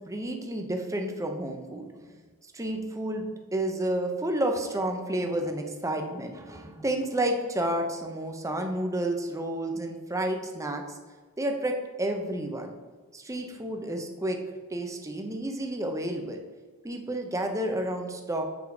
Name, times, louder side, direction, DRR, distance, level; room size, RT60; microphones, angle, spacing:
voice 1, 0.1-2.1 2.5-3.2 3.5-11.0 11.4-12.7 13.1-14.4 14.7-16.4 16.8-18.4, right 1 dB, 15° right, 3 dB, 0.7 m, -30 dB
7.2 x 4.7 x 4.8 m, 1.4 s
head